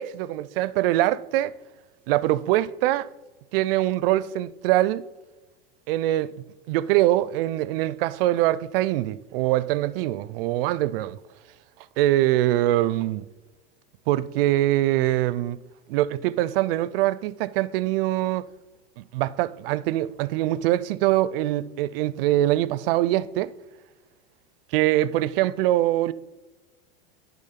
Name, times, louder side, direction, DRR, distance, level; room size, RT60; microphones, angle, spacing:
voice 1, 0.0-1.5 2.1-3.1 3.5-5.0 5.9-6.3 6.7-11.2 12.0-13.2 14.1-15.6 15.9-18.5 19.0-23.5 24.7-26.1, right 15 dB, 70° right, 0.4 m, -23 dB
10.0 x 3.5 x 5.8 m
supercardioid pair, 120°, 29 cm